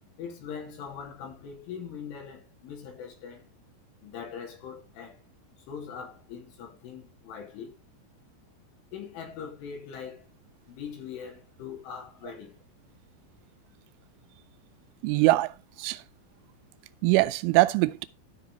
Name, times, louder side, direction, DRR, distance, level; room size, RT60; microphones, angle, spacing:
voice 1, 0.2-3.5 4.0-5.2 5.7-7.7 8.9-10.2 10.7-12.6, left 7 dB, 85° left, 5.1 m, -41 dB
voice 2, 15.0-15.5 15.8-16.0 17.0-18.1, right 19 dB, 85° right, 3.1 m, -22 dB
12.5 x 5.8 x 3.8 m
omnidirectional pair, 5.4 m